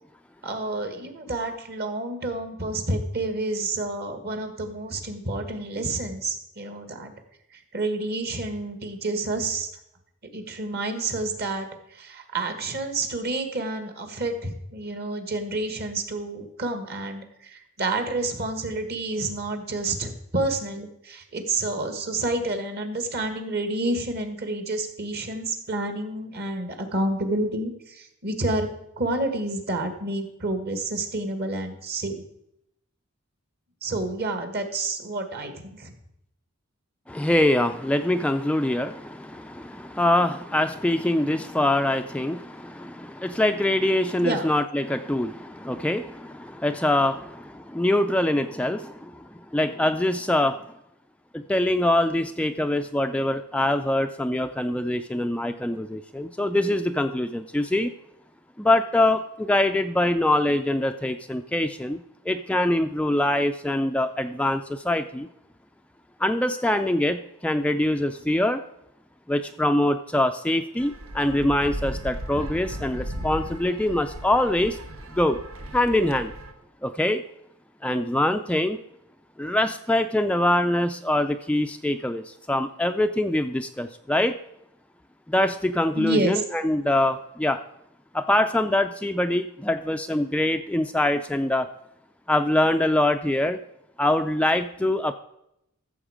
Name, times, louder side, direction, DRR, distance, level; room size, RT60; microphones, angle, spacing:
voice 1, 0.4-7.1 7.5-9.7 10.3-28.7 29.0-32.2 33.8-35.9 44.2-44.5 86.0-86.4, right 2 dB, 50° right, 7 dB, 1.6 m, -29 dB
voice 2, 37.1-50.6 51.3-57.9 58.6-65.3 66.2-68.6 69.3-74.8 75.1-75.4 75.7-76.3 76.8-77.2 77.8-78.8 79.4-84.4 85.3-87.6 88.1-91.7 92.3-93.6 94.0-95.1, left 1 dB, 5° left, 7 dB, 0.3 m, -24 dB
sound 1, 70.8-76.5, equal, 85° right, 1.2 m, -36 dB
14.0 x 7.2 x 4.9 m, 0.80 s
head